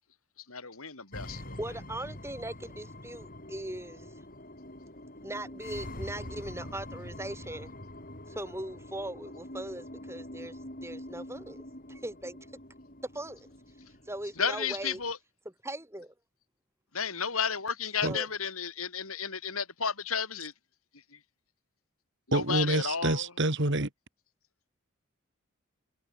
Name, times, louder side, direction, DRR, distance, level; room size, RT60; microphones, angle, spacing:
voice 1, 0.5-1.6 14.4-15.2 16.9-20.5 21.1-21.2 22.3-23.3, left 6 dB, 80° left, 5.2 m, -32 dB
sound 1, 1.1-15.1, left 1 dB, 40° left, 7.2 m, -45 dB
voice 2, 1.3-4.1 5.2-7.7 8.3-12.4 13.1-13.5 14.1-15.0 15.6-16.1 18.0-18.3, right 1 dB, 10° right, 7.2 m, -39 dB
voice 3, 22.3-23.9, right 2 dB, 55° right, 2.5 m, -27 dB
head